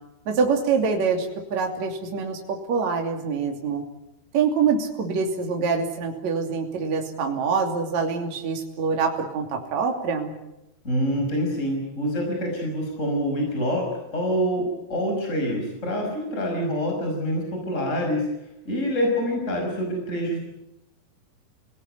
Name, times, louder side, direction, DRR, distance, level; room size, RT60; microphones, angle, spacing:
voice 1, 0.3-3.8 4.3-10.3, right 5 dB, 50° right, 2 dB, 4.0 m, -25 dB
voice 2, 10.8-18.3 18.7-20.4, equal, 20° left, 1 dB, 5.8 m, -26 dB
28.5 x 18.5 x 9.8 m, 0.90 s
omnidirectional pair, 4.4 m